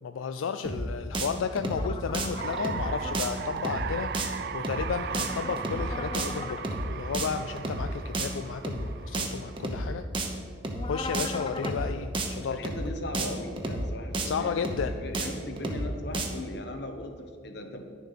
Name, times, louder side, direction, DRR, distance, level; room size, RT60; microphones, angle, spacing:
voice 1, 0.0-6.6 6.9-10.0 10.8-12.6 14.2-15.0, left 6 dB, 80° left, 8 dB, 0.4 m, -33 dB
sound 1, 0.6-0.9 1.1-1.3 1.6-1.9 2.1-2.3 2.6-2.9 3.1-3.3 3.6-3.9 4.1-4.3 4.6-4.9 5.1-5.3 5.6-5.9 6.1-6.3 6.6-6.9 7.1-7.3 7.6-7.9 8.1-8.3 8.6-8.9 9.1-9.3 9.6-9.9 10.1-10.3 10.6-10.9 11.1-11.3 11.6-11.9 12.1-12.3 12.6-12.9 13.1-13.3 13.6-13.9 14.1-14.3 14.6-14.9 15.1-15.3 15.6-15.9 16.1-16.3, right 2 dB, 25° right, 0.9 m, -31 dB
sound 2, 1.7-3.2 4.9-6.6 10.7-11.8, left 3 dB, 25° left, 0.5 m, -39 dB
sound 3, 2.0-10.0, right 7 dB, 55° right, 0.3 m, -38 dB
voice 2, 12.4-17.8, left 1 dB, 55° left, 5 dB, 1.1 m, -38 dB
10.5 x 7.1 x 5.6 m, 2.3 s
head